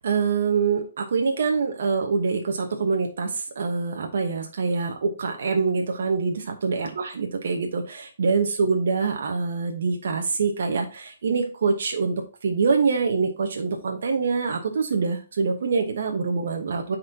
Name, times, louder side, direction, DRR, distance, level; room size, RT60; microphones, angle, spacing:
voice 1, 0.0-17.0, right 4 dB, 70° right, 3 dB, 1.0 m, -25 dB
8.8 x 4.2 x 2.8 m, 0.34 s
hypercardioid pair, 150°, 0 cm